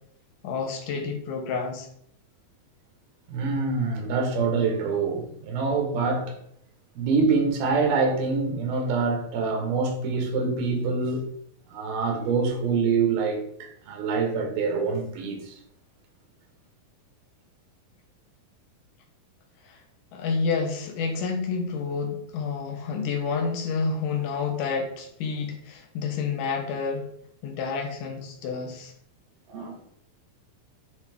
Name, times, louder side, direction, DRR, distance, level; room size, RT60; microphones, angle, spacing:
voice 1, 0.4-1.9 19.6-19.8 20.1-27.1 27.4-28.9, left 5 dB, 75° left, 2.3 m, -29 dB
voice 2, 3.3-6.4 7.0-11.3 11.7-15.6 29.5-29.8, right 4 dB, 80° right, 2.9 m, -25 dB
8.2 x 3.4 x 3.4 m
omnidirectional pair, 4.2 m